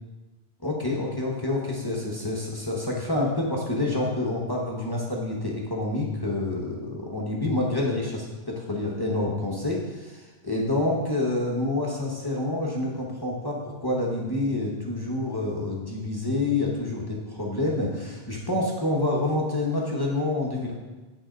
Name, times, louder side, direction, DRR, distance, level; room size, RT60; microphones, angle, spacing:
voice 1, 0.6-20.8, left 2 dB, 20° left, -3 dB, 0.9 m, -28 dB
8.9 x 3.8 x 5.1 m, 1.2 s
omnidirectional pair, 1.2 m